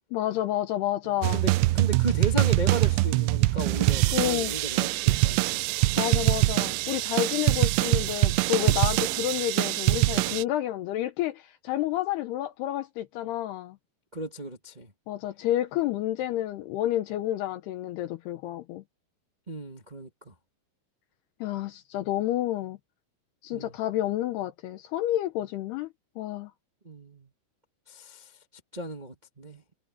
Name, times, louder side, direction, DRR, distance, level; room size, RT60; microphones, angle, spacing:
voice 1, 0.1-1.4 4.1-4.5 6.0-13.8 15.1-18.8 21.4-22.8 23.4-25.9 26.2-26.5, left 13 dB, 80° left, 2.5 m, -30 dB
voice 2, 1.0-5.6 14.1-14.9 19.5-20.3 23.5-23.7 26.8-27.3 27.9-28.3 28.7-29.6, right 1 dB, 20° right, 1.0 m, -35 dB
sound 1, 1.2-10.4, right 19 dB, 85° right, 3.1 m, -24 dB
omnidirectional pair, 5.3 m